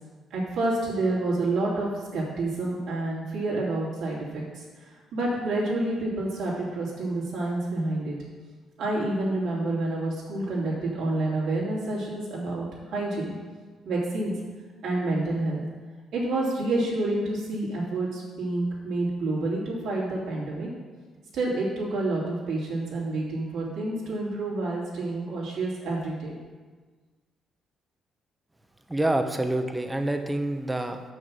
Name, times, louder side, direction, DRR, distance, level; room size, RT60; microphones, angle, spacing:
voice 1, 0.3-8.1 8.8-13.4 13.8-14.3 14.8-15.6 16.1-20.7 21.3-26.4, right 2 dB, 80° right, -5 dB, 3.1 m, -28 dB
voice 2, 28.9-31.0, right 1 dB, 10° right, 6 dB, 0.8 m, -27 dB
6.4 x 5.9 x 7.3 m, 1.4 s
cardioid pair, 90°, 0 cm